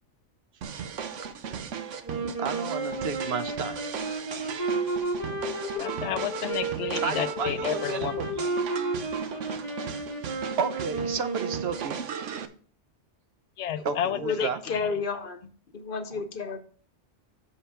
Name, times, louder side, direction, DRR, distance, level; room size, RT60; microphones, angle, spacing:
sound 1, 0.6-12.5, right 7 dB, 80° right, 1.1 m, -37 dB
sound 2, 2.0-12.1, right 2 dB, 35° right, 1.8 m, -32 dB
voice 1, 2.2-3.8 7.0-8.3 10.3-12.1 13.8-14.6, right 6 dB, 65° right, 0.8 m, -32 dB
voice 2, 5.8-8.1 13.6-14.9, left 10 dB, 75° left, 0.9 m, -32 dB
voice 3, 13.9-15.4 15.7-16.6, left 5 dB, 50° left, 1.0 m, -31 dB
6.7 x 5.5 x 5.6 m
omnidirectional pair, 1.2 m